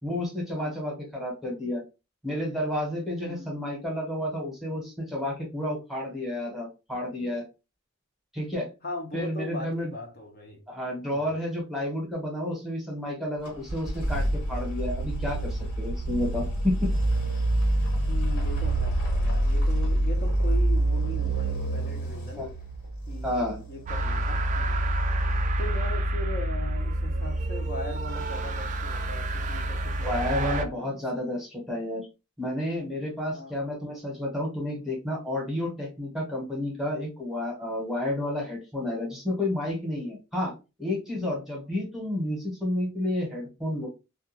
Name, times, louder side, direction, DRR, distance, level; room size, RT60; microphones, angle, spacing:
voice 1, 0.0-1.8 2.2-7.4 8.3-8.7 9.1-9.9 10.7-16.9 22.4-22.5 23.2-23.6 30.0-32.1 32.4-40.5 40.8-43.9, left 1 dB, ahead, 0.9 m, -31 dB
voice 2, 3.2-3.5 8.8-10.6 11.1-11.3 18.1-22.4 23.1-24.9 25.3-31.0 33.3-33.5, left 1 dB, 50° left, 0.7 m, -39 dB
sound 1, 13.5-24.3, right 1 dB, 85° left, 1.4 m, -27 dB
sound 2, 23.9-30.7, right 1 dB, 35° right, 0.3 m, -28 dB
2.3 x 2.3 x 2.8 m
head